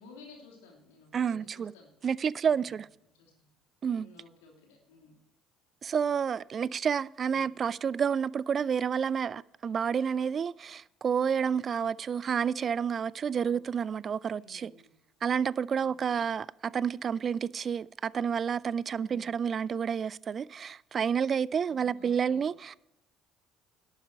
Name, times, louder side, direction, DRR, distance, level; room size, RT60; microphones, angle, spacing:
voice 1, 0.0-1.9 2.4-2.7 3.1-3.5 3.9-5.2 7.3-7.6 13.3-13.7 14.4-14.9 15.8-16.3 18.9-19.3 21.7-22.5, left 3 dB, 80° left, 3.0 m, -55 dB
voice 2, 1.1-1.7 2.0-2.9 3.8-4.1 5.8-14.7 15.2-22.7, right 7 dB, 45° right, 0.3 m, -30 dB
11.5 x 8.2 x 5.4 m
hypercardioid pair, 55°, 0 cm